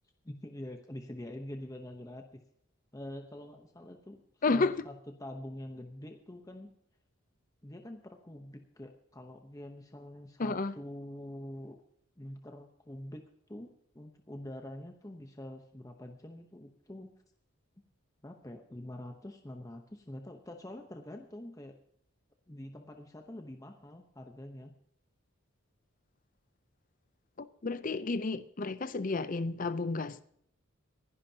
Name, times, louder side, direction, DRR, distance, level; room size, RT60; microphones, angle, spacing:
voice 1, 0.2-2.4 2.9-6.7 7.6-11.8 12.2-13.2 13.5-13.7 13.9-17.1 18.2-21.8 22.5-24.7, left 1 dB, 15° left, 0.9 m, -45 dB
voice 2, 4.4-4.8 10.4-10.7 27.4-30.2, left 3 dB, 40° left, 0.5 m, -31 dB
26.0 x 11.0 x 2.8 m
head